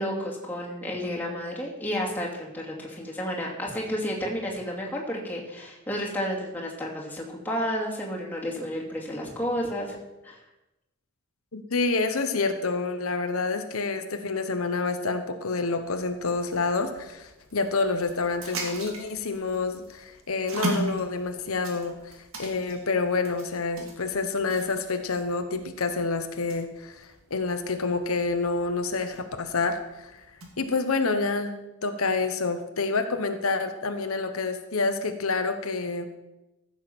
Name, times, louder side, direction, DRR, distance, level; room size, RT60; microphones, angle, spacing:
voice 1, 0.0-10.0 10.2-10.4, equal, 10° left, -3 dB, 2.5 m, -31 dB
voice 2, 11.5-30.2 30.6-36.1, left 3 dB, 80° left, 7 dB, 1.0 m, -28 dB
sound 1, 15.8-30.7, right 2 dB, 70° right, 2.3 m, -39 dB
14.5 x 7.3 x 6.1 m, 0.98 s
head